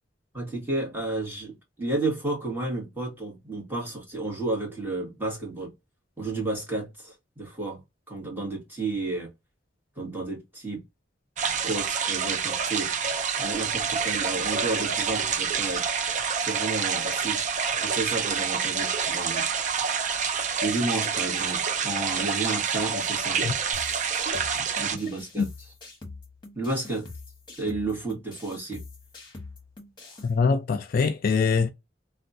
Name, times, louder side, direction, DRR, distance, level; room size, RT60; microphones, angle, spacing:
voice 1, 0.3-5.7 6.2-7.8 8.1-9.3 10.0-10.8 11.6-12.9 13.4-15.9 16.4-17.4 17.8-19.4 20.6-23.4 24.6-25.5 26.5-27.1 27.6-28.8, right 2 dB, 10° right, 1.5 m, -32 dB
sound 1, 11.4-25.0, right 6 dB, 40° right, 0.4 m, -27 dB
sound 2, 23.7-30.3, left 3 dB, 25° left, 1.3 m, -44 dB
voice 2, 30.2-31.7, left 5 dB, 50° left, 0.4 m, -23 dB
3.4 x 2.3 x 2.6 m
head